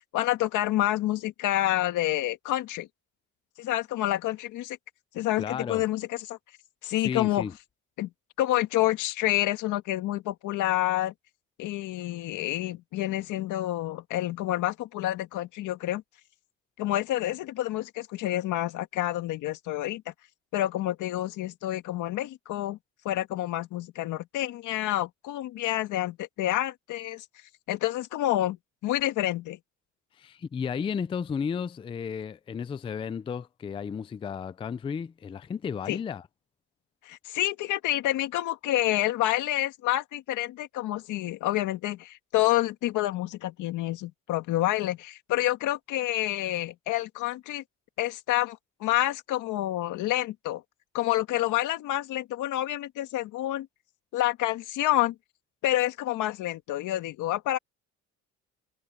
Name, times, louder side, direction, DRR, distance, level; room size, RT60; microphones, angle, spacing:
voice 1, 0.1-2.9 3.6-4.8 5.1-6.4 6.8-7.5 8.0-8.1 8.4-11.1 11.6-16.0 16.8-20.1 20.5-22.8 23.0-27.3 27.7-28.6 28.8-29.6 35.9-36.0 37.0-47.6 48.0-50.6 50.9-53.7 54.1-55.2 55.6-57.6, left 15 dB, 85° left, 1.9 m, -28 dB
voice 2, 5.4-5.8 7.0-7.5 30.2-36.2, left 6 dB, 20° left, 0.3 m, -33 dB
cardioid pair, 160°, 30 cm